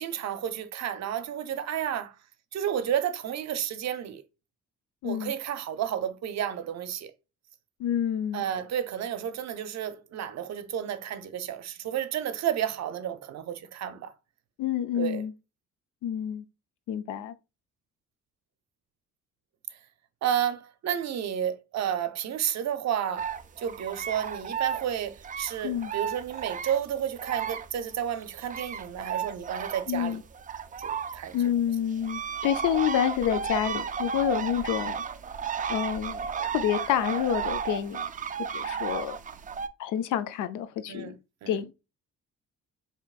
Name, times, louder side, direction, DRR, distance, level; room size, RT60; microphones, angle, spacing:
voice 1, 0.0-2.2 2.5-4.2 5.0-7.1 8.3-14.1 14.9-15.2 20.2-30.2 30.8-31.4 40.9-41.2 41.4-41.6, right 9 dB, 60° right, 0.7 m, -31 dB
voice 2, 5.0-5.3 7.8-8.4 14.6-15.3 16.0-16.4 16.9-17.3 25.6-25.9 29.9-30.2 31.3-35.0 35.7-36.2 36.5-38.1 38.5-39.2 39.8-41.2 41.5-41.7, left 10 dB, 85° left, 0.5 m, -28 dB
sound 1, 23.2-27.9 28.2-39.7, right 6 dB, 30° right, 0.4 m, -34 dB
4.6 x 2.8 x 2.4 m
cardioid pair, 90°, 30 cm